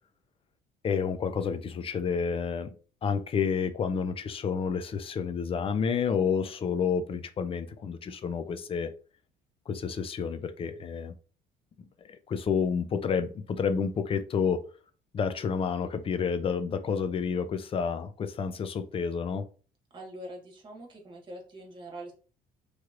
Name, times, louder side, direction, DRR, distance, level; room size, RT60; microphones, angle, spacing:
voice 1, 0.8-2.7 3.0-8.9 9.7-11.1 12.3-14.6 15.1-19.5, left 6 dB, 35° left, 0.4 m, -29 dB
voice 2, 19.9-22.1, right 1 dB, 30° right, 1.3 m, -43 dB
3.1 x 2.9 x 2.4 m
cardioid pair, 110°, 17 cm